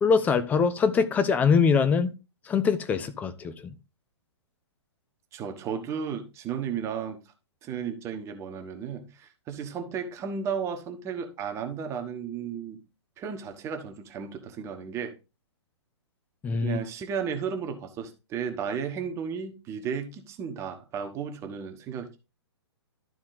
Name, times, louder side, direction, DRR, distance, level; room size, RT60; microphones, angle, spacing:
voice 1, 0.0-2.1 2.5-3.7 16.4-16.8, left 5 dB, 10° left, 0.6 m, -23 dB
voice 2, 5.3-7.2 7.6-12.8 13.2-15.1 16.6-22.2, right 7 dB, 20° right, 1.2 m, -34 dB
12.0 x 4.2 x 3.9 m
figure-of-eight pair, 120°, 14 cm